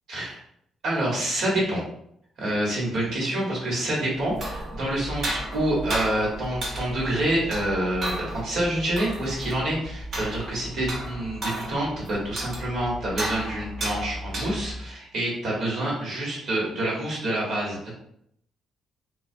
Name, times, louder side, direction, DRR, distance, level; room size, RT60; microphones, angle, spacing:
voice 1, 0.8-1.8 2.4-17.9, right 1 dB, 70° right, -4 dB, 1.1 m, -27 dB
sound 1, 4.2-14.9, right 1 dB, 55° right, 0.7 m, -34 dB
2.4 x 2.3 x 2.5 m, 0.70 s
cardioid pair, 90°, 0 cm